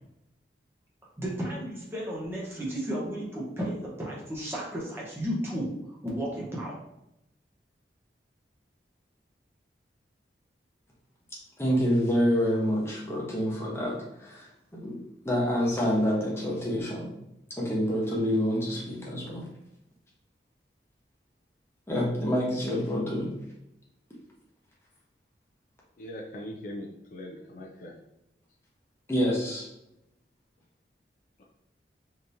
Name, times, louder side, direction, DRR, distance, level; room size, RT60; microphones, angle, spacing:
voice 1, 1.2-5.7 6.0-6.7, equal, 15° right, -5 dB, 0.8 m, -33 dB
voice 2, 11.6-14.5 14.7-15.0 15.2-17.1 17.6-19.5 21.9-23.3 29.1-29.7, equal, 15° left, -4 dB, 0.8 m, -27 dB
voice 3, 26.0-27.9, left 1 dB, 45° left, -1 dB, 0.4 m, -40 dB
3.5 x 2.9 x 2.6 m, 0.85 s
head